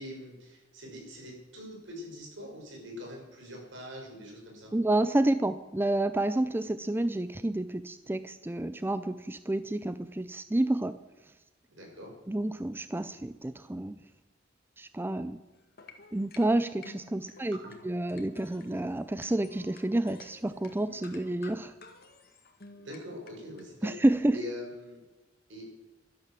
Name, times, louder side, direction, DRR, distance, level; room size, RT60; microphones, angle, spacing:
voice 1, 0.0-4.7 11.7-12.1 17.6-17.8 22.7-23.9 24.3-25.0 25.5-25.7, left 1 dB, 70° right, 0 dB, 5.9 m, -43 dB
voice 2, 4.7-11.0 12.3-14.0 14.8-15.4 16.1-17.6 17.8-21.8 23.8-24.4, right 1 dB, 10° right, 13 dB, 0.4 m, -29 dB
sound 1, 15.6-23.7, left 3 dB, 55° left, 1.9 m, -53 dB
12.5 x 11.5 x 7.5 m, 1.1 s
head